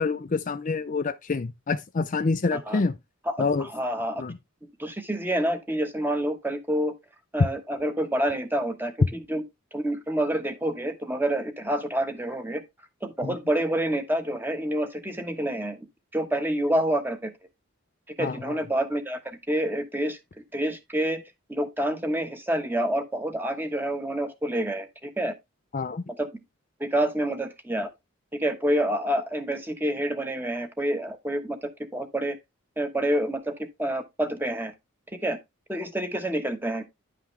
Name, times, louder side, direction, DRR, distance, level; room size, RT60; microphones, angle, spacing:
voice 1, 0.0-2.9 3.4-3.7 4.2-4.4 13.2-13.4 18.2-18.6 25.7-26.0, left 4 dB, 35° left, 0.4 m, -27 dB
voice 2, 2.5-2.8 3.2-4.2 4.8-6.9 7.3-9.4 9.7-12.6 13.0-15.8 16.1-17.3 18.2-20.2 20.5-21.2 21.5-25.3 26.2-26.3 26.8-27.9 28.3-31.6 31.9-32.4 32.8-34.7 35.2-35.4 35.7-36.8, right 1 dB, 10° right, 1.1 m, -28 dB
10.5 x 5.7 x 3.2 m
head